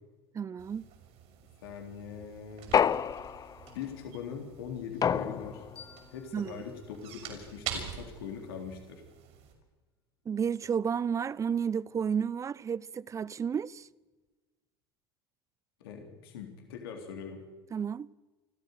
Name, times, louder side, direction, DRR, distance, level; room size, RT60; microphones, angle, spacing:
voice 1, 0.3-0.9 6.3-6.5 10.3-13.9 17.7-18.1, right 7 dB, 25° right, 0.7 m, -31 dB
sound 1, 0.6-9.5, right 8 dB, 55° right, 6.5 m, -46 dB
voice 2, 1.6-2.7 3.7-5.6 6.1-9.0 15.8-17.4, left 7 dB, 70° left, 3.7 m, -42 dB
sound 2, 2.7-3.7 5.0-5.8, left 8 dB, 30° left, 0.7 m, -28 dB
sound 3, 5.8-8.6, left 7 dB, 90° left, 3.8 m, -57 dB
30.0 x 13.0 x 6.7 m
hypercardioid pair, 80°, 13 cm